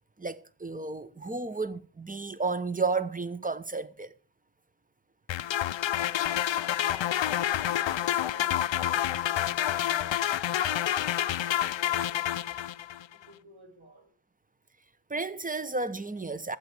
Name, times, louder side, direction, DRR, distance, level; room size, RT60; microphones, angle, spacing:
voice 1, 0.2-4.1 15.1-16.6, right 3 dB, 15° right, 0.9 m, -32 dB
sound 1, 5.3-13.0, left 11 dB, 70° left, 0.5 m, -28 dB
voice 2, 5.9-12.5 13.1-14.1, right 1 dB, 80° right, 4.5 m, -53 dB
12.5 x 8.2 x 4.9 m
wide cardioid pair, 70°, 48 cm